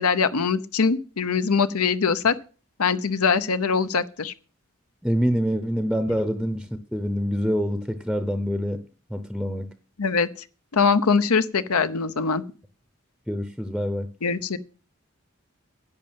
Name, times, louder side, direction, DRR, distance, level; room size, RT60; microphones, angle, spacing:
voice 1, 0.0-2.3 2.8-4.3 10.0-10.3 10.7-12.4 14.2-14.6, left 5 dB, 85° left, 0.8 m, -22 dB
voice 2, 5.0-8.8 9.1-9.7 13.3-14.1, equal, ahead, 0.6 m, -26 dB
10.5 x 6.6 x 8.9 m
head